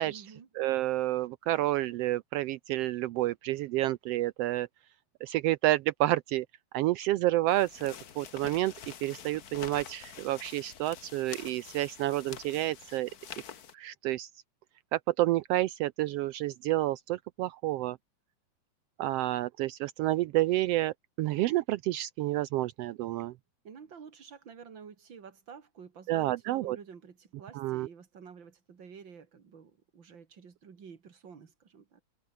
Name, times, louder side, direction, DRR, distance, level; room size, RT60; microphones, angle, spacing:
voice 1, 0.0-0.5 23.6-32.0, right 6 dB, 40° right, 2.8 m, -50 dB
voice 2, 0.6-4.7 5.2-6.5 6.7-8.7 9.0-13.1 13.7-14.3 14.9-18.0 19.0-23.3 26.1-26.8 27.5-27.9, right 16 dB, 90° right, 1.3 m, -29 dB
sound 1, 7.5-13.7, left 8 dB, 55° left, 1.1 m, -47 dB
omnidirectional pair, 3.3 m